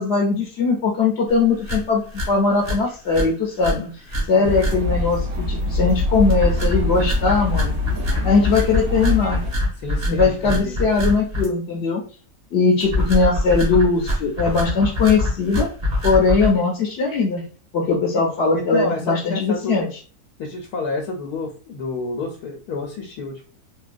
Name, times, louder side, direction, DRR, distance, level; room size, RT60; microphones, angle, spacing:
voice 1, 0.0-3.8 4.3-7.8 8.2-9.4 10.1-12.0 12.5-15.7 16.0-17.4 17.7-19.9, left 4 dB, 55° left, -2 dB, 0.8 m, -20 dB
sound 1, 1.3-1.4 1.6-1.8 2.1-2.3 2.6-2.8 3.1-3.3 3.6-3.8 4.1-4.2 4.6-4.7 6.3-11.5 12.8-16.5, left 1 dB, 35° right, 1.1 m, -24 dB
sound 2, 4.4-9.5, left 3 dB, 70° right, 1.4 m, -24 dB
voice 2, 9.8-10.8 18.5-19.9 20.4-23.4, left 3 dB, 90° left, 0 dB, 1.2 m, -29 dB
3.7 x 2.3 x 2.4 m, 0.37 s
omnidirectional pair, 1.6 m